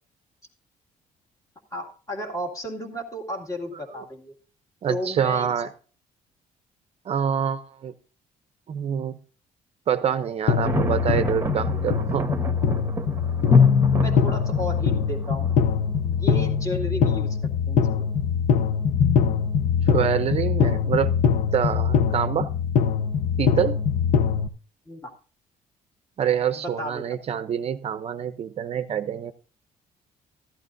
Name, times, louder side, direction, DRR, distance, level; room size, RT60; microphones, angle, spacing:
voice 1, 1.7-4.3 4.9-5.6 13.9-15.5 16.0-17.4 17.7-18.1 24.9-25.1 26.6-27.0, equal, 20° left, 2.1 m, -33 dB
voice 2, 4.8-5.7 7.1-7.9 8.7-9.2 9.9-12.3 19.9-21.2 21.5-22.5 23.4-23.8 26.2-29.3, right 8 dB, 45° right, 0.6 m, -26 dB
sound 1, 10.5-24.5, left 7 dB, 55° left, 0.7 m, -22 dB
Thunder, 10.5-16.3, right 3 dB, 15° right, 1.1 m, -32 dB
14.5 x 11.0 x 2.6 m
cardioid pair, 125°, 15 cm